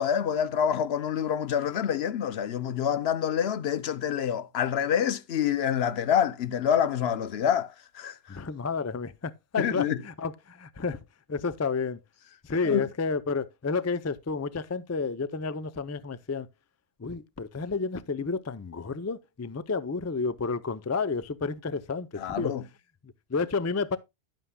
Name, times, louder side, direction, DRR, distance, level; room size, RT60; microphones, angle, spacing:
voice 1, 0.0-8.2 9.6-10.0 12.6-12.8 22.2-22.6, left 8 dB, 70° left, 0.9 m, -27 dB
voice 2, 8.3-11.0 11.3-12.0 12.4-16.5 17.0-22.5 23.0-24.0, left 4 dB, 25° left, 0.3 m, -31 dB
11.0 x 9.0 x 2.2 m
omnidirectional pair, 1.1 m